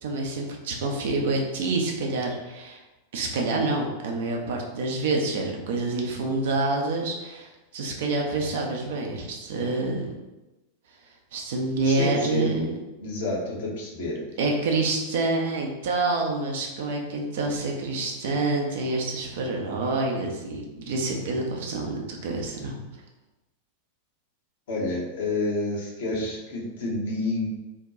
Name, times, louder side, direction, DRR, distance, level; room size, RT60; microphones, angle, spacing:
voice 1, 0.0-2.8 3.1-10.1 11.3-12.7 14.4-22.8, right 3 dB, 55° right, 1 dB, 0.5 m, -27 dB
voice 2, 11.8-12.5 13.0-14.2 24.7-27.5, left 2 dB, 55° left, -3 dB, 0.8 m, -29 dB
2.6 x 2.2 x 3.7 m, 1.0 s
figure-of-eight pair, 90°, 0 cm